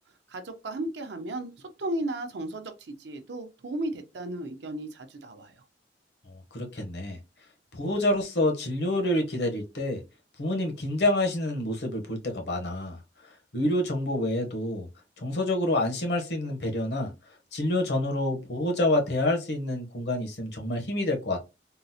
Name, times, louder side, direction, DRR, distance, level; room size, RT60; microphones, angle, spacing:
voice 1, 0.3-5.6, right 1 dB, 80° right, 0.6 m, -35 dB
voice 2, 6.3-7.2 7.7-10.0 10.4-13.0 13.5-14.9 15.2-17.1 17.5-21.4, left 1 dB, 70° left, 0.8 m, -27 dB
3.7 x 2.0 x 2.7 m
head